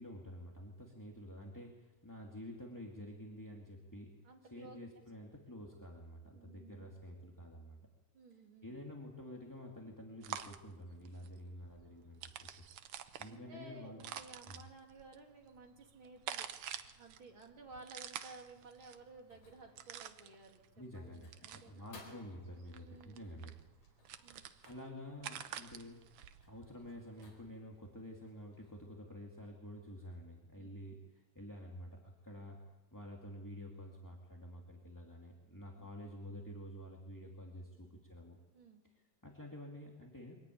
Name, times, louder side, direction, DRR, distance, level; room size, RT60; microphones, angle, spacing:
voice 1, 0.0-7.8 8.6-12.5 12.9-14.0 14.5-14.6 20.8-23.5 24.6-26.1 26.5-32.6 32.9-38.4 38.9-40.4, equal, 5° left, -2 dB, 1.7 m, -50 dB
voice 2, 4.2-4.8 6.3-6.9 8.1-8.7 13.2-16.5 16.9-21.8 22.8-23.6 24.2-24.4 30.6-30.8 35.8-35.9 38.5-38.8, right 3 dB, 40° right, 2 dB, 3.3 m, -56 dB
sound 1, 10.2-27.2, right 9 dB, 75° right, 1.3 m, -49 dB
sound 2, 17.7-28.9, left 3 dB, 80° left, 5.9 m, -64 dB
23.5 x 15.5 x 9.4 m, 1.1 s
omnidirectional pair, 3.7 m